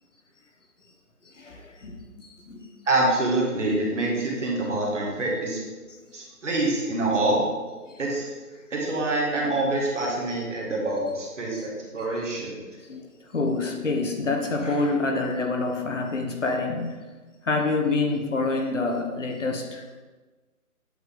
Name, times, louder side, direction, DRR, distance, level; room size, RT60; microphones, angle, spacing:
voice 1, 1.2-2.7 6.1-6.2 7.9-8.0 12.8-17.0 17.4-20.0, left 3 dB, 50° left, 3 dB, 0.8 m, -27 dB
voice 2, 2.9-5.6 6.1-7.5 8.0-8.3 8.7-12.6, right 2 dB, 50° right, -2 dB, 1.5 m, -26 dB
7.8 x 3.3 x 3.7 m, 1.3 s
hypercardioid pair, 175°, 46 cm